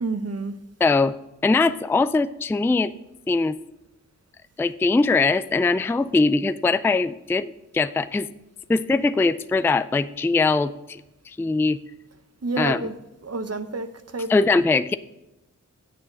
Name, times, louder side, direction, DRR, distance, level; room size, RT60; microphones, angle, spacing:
voice 1, 0.0-0.6 12.4-13.0 13.2-14.3, right 3 dB, 50° right, 0.8 m, -29 dB
voice 2, 0.8-1.1 1.4-2.9 3.3-3.6 4.6-8.3 8.7-11.0 11.4-11.8 12.6-12.8 14.3-15.0, left 3 dB, 10° left, 0.3 m, -21 dB
8.7 x 7.2 x 5.1 m
wide cardioid pair, 45°, 32 cm